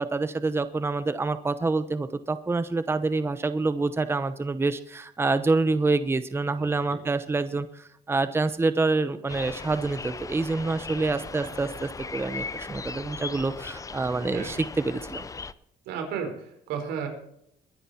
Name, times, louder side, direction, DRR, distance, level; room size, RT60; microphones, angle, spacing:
voice 1, 0.0-15.3, right 3 dB, 15° right, 12 dB, 0.8 m, -27 dB
voice 2, 6.6-7.0 11.4-11.5 14.3-14.6 15.8-17.1, right 7 dB, 85° right, 4 dB, 4.6 m, -34 dB
sound 1, 9.3-15.5, left 4 dB, 20° left, 0.6 m, -38 dB
22.5 x 10.0 x 4.3 m, 0.74 s
cardioid pair, 110°, 17 cm